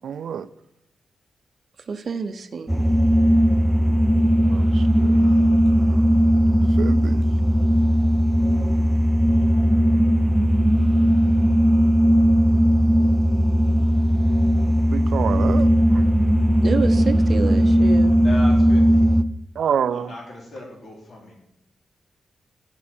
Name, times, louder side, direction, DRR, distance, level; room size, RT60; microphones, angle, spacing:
voice 1, 0.0-0.5 4.4-6.2 6.8-7.2 14.9-16.0 19.6-20.1, right 7 dB, 85° right, 0.5 m, -28 dB
voice 2, 1.9-2.8 16.6-18.2, right 5 dB, 45° right, 0.7 m, -28 dB
sound 1, 2.7-19.2, equal, 10° right, 0.5 m, -18 dB
voice 3, 18.2-19.1 19.9-21.3, left 1 dB, 55° left, 3.5 m, -37 dB
12.5 x 9.8 x 4.5 m
wide cardioid pair, 160°, 0 cm